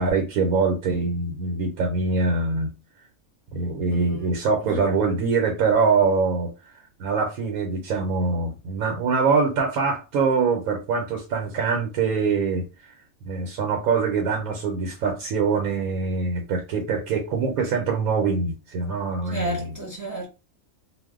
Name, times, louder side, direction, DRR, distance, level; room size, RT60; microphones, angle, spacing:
voice 1, 0.0-2.7 3.5-6.5 7.0-12.6 13.2-19.7, right 4 dB, 85° right, 1.1 m, -24 dB
voice 2, 19.3-20.3, right 1 dB, 20° right, 0.6 m, -32 dB
2.5 x 2.1 x 3.6 m
omnidirectional pair, 1.5 m